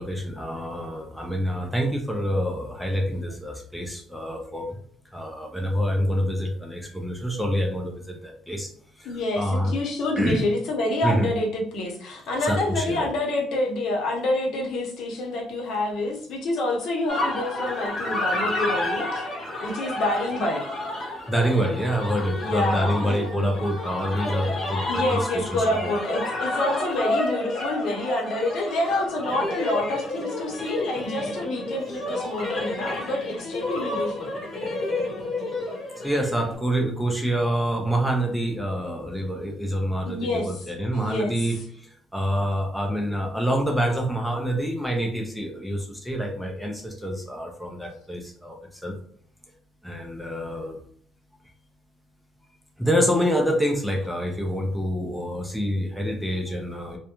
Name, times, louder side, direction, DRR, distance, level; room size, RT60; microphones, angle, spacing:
voice 1, 0.0-4.8 5.1-8.7 9.0-9.7 10.2-10.4 11.0-11.3 12.4-13.1 21.3-25.9 36.0-49.0 49.8-50.8 52.8-57.0, equal, ahead, 0 dB, 0.4 m, -27 dB
voice 2, 9.0-19.2 19.6-20.6 22.4-23.6 24.9-34.3 40.1-40.6 40.9-41.6, left 1 dB, 60° left, 0 dB, 0.8 m, -27 dB
sound 1, 17.1-36.5, left 2 dB, 30° left, 1.0 m, -30 dB
2.3 x 2.1 x 2.9 m, 0.62 s
cardioid pair, 140°, 0 cm